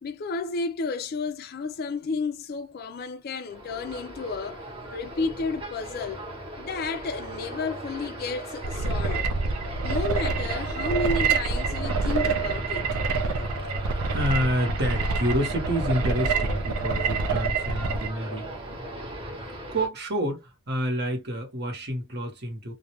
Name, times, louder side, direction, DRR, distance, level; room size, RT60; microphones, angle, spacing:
voice 1, 0.0-4.7 4.9-6.2 6.6-9.3 9.8-12.9, left 3 dB, 45° left, 0.3 m, -32 dB
sound 1, 3.5-19.9, right 1 dB, 25° right, 0.8 m, -37 dB
sound 2, 8.6-18.1, right 4 dB, 80° right, 0.4 m, -27 dB
voice 2, 13.4-18.8 19.7-22.7, equal, 50° right, 1.0 m, -29 dB
2.3 x 2.1 x 2.9 m
head